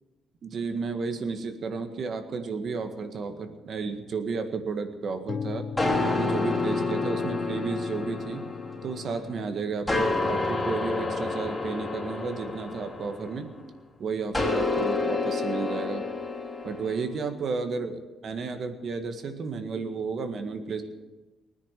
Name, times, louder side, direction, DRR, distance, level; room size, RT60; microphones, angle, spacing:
voice 1, 0.4-5.6 6.0-8.4 8.8-13.5 14.0-16.1 16.6-20.8, right 4 dB, 55° right, 7 dB, 1.8 m, -32 dB
sound 1, 5.3-13.2, left 6 dB, 60° left, 0.9 m, -40 dB
sound 2, 5.8-9.3 9.9-13.6 14.3-17.0, left 3 dB, 10° left, 3.0 m, -29 dB
19.5 x 10.0 x 6.7 m, 1.2 s
cardioid pair, 90°, 0 cm